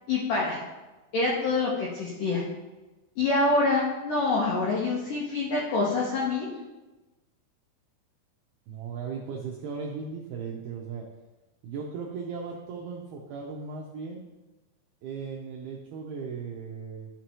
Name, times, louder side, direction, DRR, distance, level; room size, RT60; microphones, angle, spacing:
voice 1, 0.1-0.6 1.1-2.4 3.2-6.5, left 3 dB, 70° left, -5 dB, 2.0 m, -26 dB
voice 2, 8.7-11.0 11.6-14.2 15.0-17.1, right 5 dB, 80° right, -1 dB, 2.3 m, -37 dB
12.5 x 5.8 x 3.0 m, 1.1 s
omnidirectional pair, 5.4 m